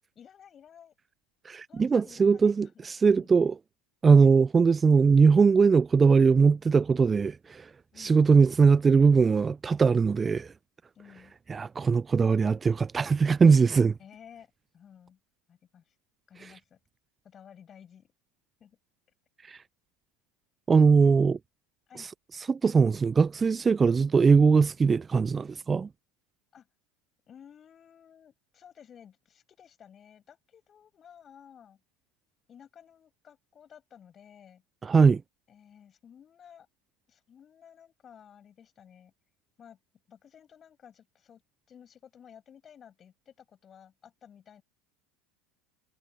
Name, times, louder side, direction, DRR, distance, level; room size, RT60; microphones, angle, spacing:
voice 1, 0.2-0.9 1.7-3.3 4.1-4.4 7.9-8.3 10.9-11.3 14.0-15.2 15.5-15.9 16.3-16.8 17.2-18.1 18.6-18.8 21.9-22.1 26.5-26.7 27.3-31.8 32.5-34.6 35.5-36.7 37.1-39.1 39.6-39.8 40.1-41.4 41.7-44.6, left 8 dB, 35° left, 7.9 m, -54 dB
voice 2, 1.4-3.6 4.0-7.7 8.0-10.5 11.5-13.9 16.4-16.5 19.4-19.6 20.7-21.4 22.0-25.9 34.8-35.2, right 5 dB, 25° right, 0.5 m, -21 dB
hypercardioid pair, 75°, 0 cm